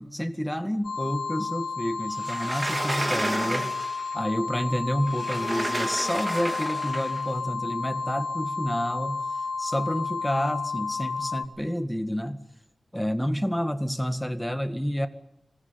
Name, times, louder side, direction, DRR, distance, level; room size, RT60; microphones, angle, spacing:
voice 1, 0.0-9.2 9.6-12.4 12.9-15.1, equal, 5° left, 9 dB, 1.9 m, -29 dB
sound 1, 0.8-11.5, left 4 dB, 60° left, 2.8 m, -31 dB
Sliding door, 2.2-4.1 5.1-7.2, right 2 dB, 35° right, 2.5 m, -31 dB
25.0 x 19.5 x 9.8 m, 0.86 s
wide cardioid pair, 70°, 0 cm